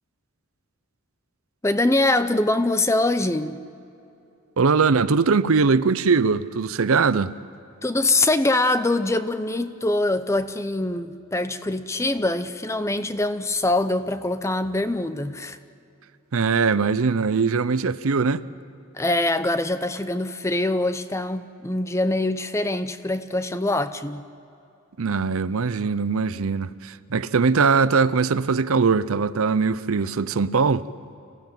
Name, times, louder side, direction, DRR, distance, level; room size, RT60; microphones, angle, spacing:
voice 1, 1.6-3.6 7.8-15.6 18.9-24.2, left 2 dB, 15° left, 0.6 m, -23 dB
voice 2, 4.6-7.3 16.3-18.4 25.0-30.9, right 5 dB, 70° right, 0.6 m, -21 dB
26.5 x 15.5 x 9.1 m
head